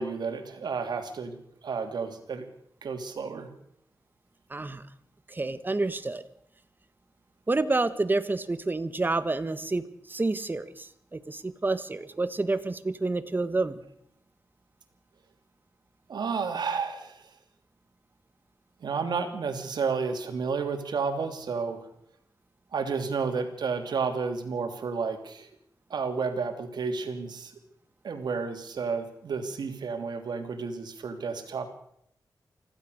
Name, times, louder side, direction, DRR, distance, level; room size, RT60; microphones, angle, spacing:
voice 1, 0.0-1.4 1.6-2.5 2.8-3.5 16.1-17.3 18.8-21.9 22.7-25.5 25.9-27.5 28.0-31.7, right 5 dB, 85° right, 7 dB, 3.0 m, -31 dB
voice 2, 4.5-4.8 5.3-6.2 7.5-13.8, right 2 dB, 30° right, 12 dB, 1.6 m, -29 dB
25.0 x 16.0 x 6.6 m, 0.74 s
wide cardioid pair, 95°, 7 cm